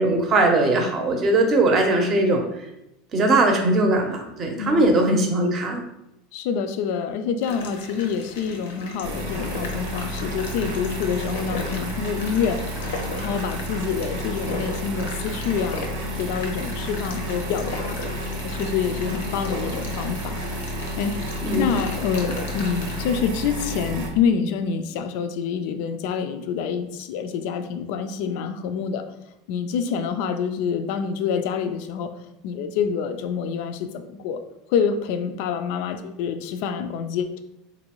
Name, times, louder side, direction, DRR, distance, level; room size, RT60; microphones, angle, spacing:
voice 1, 0.0-2.4 3.1-5.8 21.4-21.8, right 2 dB, 30° right, 3 dB, 0.6 m, -20 dB
voice 2, 4.6-4.9 6.3-18.0 18.4-20.4 21.0-21.1 21.5-29.0 29.5-32.1 32.4-34.4 34.7-37.4, left 6 dB, 65° left, 9 dB, 0.3 m, -27 dB
sound 1, 7.4-23.0, left 3 dB, 90° left, 0.7 m, -36 dB
sound 2, 9.0-24.1, equal, 75° right, 0.7 m, -31 dB
3.8 x 2.6 x 2.9 m, 0.84 s
supercardioid pair, 145°, 0 cm